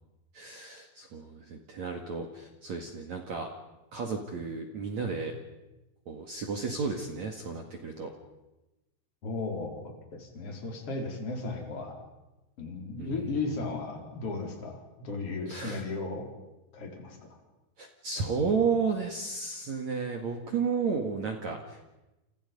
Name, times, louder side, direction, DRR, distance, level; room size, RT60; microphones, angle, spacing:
voice 1, 0.3-3.5 3.9-5.3 6.1-8.1 13.0-13.4 15.5-15.8 17.8-21.9, right 5 dB, 50° right, 3 dB, 2.4 m, -32 dB
voice 2, 9.2-12.0 12.6-16.3 16.7-17.4, left 3 dB, 30° left, 1 dB, 4.8 m, -35 dB
29.0 x 29.0 x 5.4 m, 1.0 s
omnidirectional pair, 5.5 m